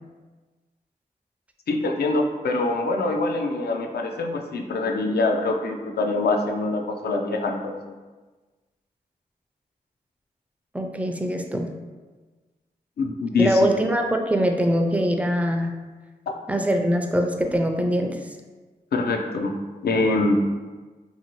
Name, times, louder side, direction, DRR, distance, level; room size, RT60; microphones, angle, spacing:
voice 1, 1.7-7.9 13.0-13.6 18.9-19.5 19.8-20.4, left 2 dB, 70° left, 2 dB, 0.4 m, -24 dB
voice 2, 10.7-11.7 13.4-15.8 16.5-18.2, equal, 10° right, 3 dB, 0.4 m, -23 dB
2.7 x 2.6 x 2.9 m, 1.3 s
cardioid pair, 45°, 17 cm